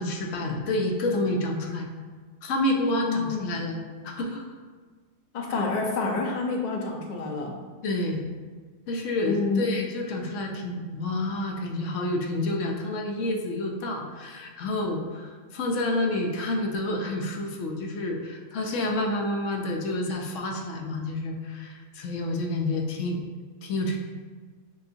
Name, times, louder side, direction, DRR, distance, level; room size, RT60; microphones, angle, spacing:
voice 1, 0.0-1.9 2.4-4.4 7.8-8.3 8.9-23.2 23.6-24.0, left 1 dB, 70° left, 1 dB, 0.9 m, -29 dB
voice 2, 2.9-3.4 5.3-7.5 9.2-9.7, left 3 dB, 55° left, 0 dB, 0.5 m, -28 dB
6.6 x 2.4 x 2.7 m, 1.5 s
omnidirectional pair, 1.4 m